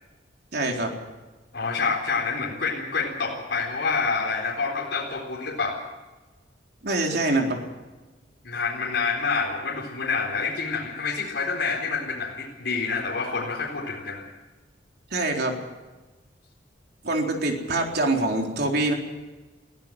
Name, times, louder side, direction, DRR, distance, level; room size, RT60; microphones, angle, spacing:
voice 1, 0.5-0.9 6.8-7.6 15.1-15.6 17.0-18.9, right 2 dB, 60° right, 2 dB, 4.0 m, -24 dB
voice 2, 1.5-5.8 8.4-14.3, left 4 dB, 65° left, -3 dB, 4.2 m, -27 dB
22.0 x 15.5 x 7.6 m, 1.2 s
head